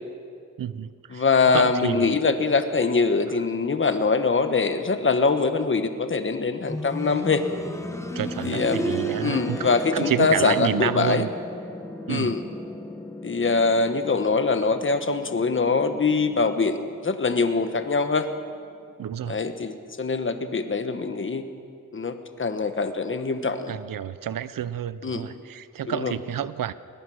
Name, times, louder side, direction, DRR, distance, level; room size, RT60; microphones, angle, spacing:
voice 1, 0.6-1.2 1.5-2.2 8.1-9.6 9.9-11.3 12.1-12.3 19.0-19.4 23.7-26.7, right 10 dB, 90° right, 15 dB, 0.7 m, -29 dB
voice 2, 1.1-7.4 8.4-8.9 9.2-11.3 12.1-12.4 13.2-16.8 17.0-18.3 19.3-21.4 21.9-23.7 25.0-25.3 25.8-26.1, left 4 dB, 40° left, 8 dB, 1.3 m, -23 dB
sound 1, 6.7-17.4 17.7-17.8 18.7-18.8, equal, 10° left, 1.3 m, -34 dB
21.0 x 20.5 x 6.4 m, 2.3 s
wide cardioid pair, 140°, 32 cm